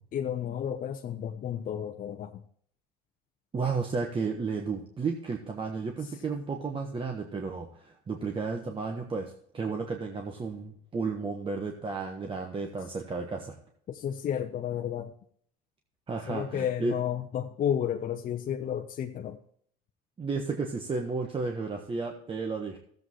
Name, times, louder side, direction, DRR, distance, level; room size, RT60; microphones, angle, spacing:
voice 1, 0.1-2.4 13.9-15.1 16.3-19.4, left 9 dB, 45° left, 3 dB, 0.8 m, -32 dB
voice 2, 3.5-13.6 16.1-16.9 20.2-22.8, right 4 dB, 25° right, 2 dB, 1.3 m, -33 dB
13.5 x 7.9 x 3.1 m, 0.62 s
supercardioid pair, 105°, 20 cm